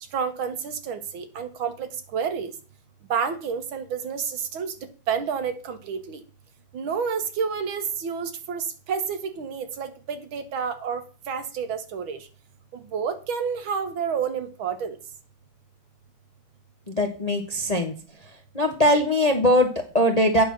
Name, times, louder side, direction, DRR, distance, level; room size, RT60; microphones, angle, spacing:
voice 1, 0.1-2.5 3.1-4.7 5.1-6.2 6.7-12.2 12.9-15.0, right 6 dB, 75° right, 8 dB, 2.0 m, -29 dB
voice 2, 16.9-17.9 18.5-20.4, left 1 dB, 30° left, 4 dB, 0.8 m, -21 dB
8.8 x 6.6 x 5.9 m, 0.36 s
omnidirectional pair, 2.3 m